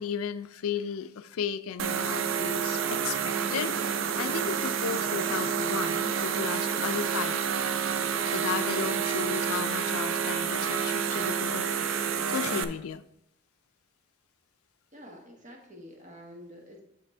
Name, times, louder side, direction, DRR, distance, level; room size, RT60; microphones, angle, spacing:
voice 1, 0.0-3.7 4.2-7.4 8.3-11.8 12.1-13.0, left 7 dB, 75° left, 14 dB, 0.4 m, -34 dB
sound 1, 1.8-12.6, right 7 dB, 65° right, 0.5 m, -29 dB
voice 2, 14.9-16.8, equal, 35° right, 1 dB, 1.5 m, -48 dB
6.6 x 6.0 x 4.4 m, 0.80 s
head